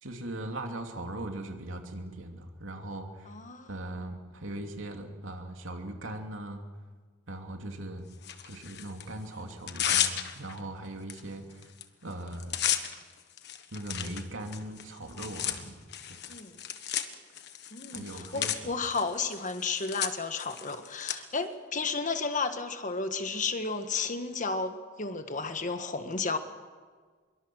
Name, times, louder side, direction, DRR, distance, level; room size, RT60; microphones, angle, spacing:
voice 1, 0.0-3.3 3.7-6.6 7.3-8.0 8.4-11.7 12.0-12.6 13.7-16.2 17.9-18.7, right 1 dB, 80° right, 3 dB, 2.8 m, -39 dB
voice 2, 3.3-3.7 16.3-16.6 17.7-26.4, left 4 dB, 40° left, 8 dB, 1.5 m, -33 dB
Tearing, 8.2-9.0 9.5-10.6 11.1-11.2 11.5-11.8 12.1-21.1, left 10 dB, 60° left, 1.5 m, -34 dB
25.0 x 22.5 x 6.3 m, 1.5 s
head